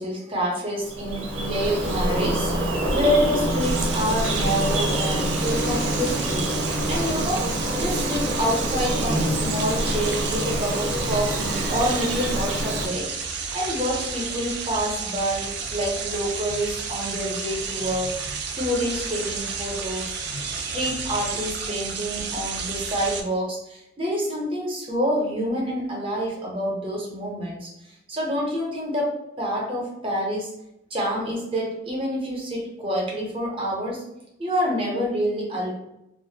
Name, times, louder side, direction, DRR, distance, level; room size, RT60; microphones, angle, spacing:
voice 1, 0.0-6.6 6.9-18.2 18.5-20.2 20.5-27.7 28.1-30.5 30.9-34.0 34.4-35.7, equal, 30° right, -3 dB, 0.7 m, -27 dB
Bird vocalization bird call bird song, 0.8-12.9, right 1 dB, 85° right, 0.6 m, -26 dB
sound 1, 3.6-23.2, right 5 dB, 55° right, 0.3 m, -32 dB
sound 2, 3.9-21.4, left 2 dB, 40° left, 0.4 m, -44 dB
2.4 x 2.1 x 2.7 m, 0.84 s
head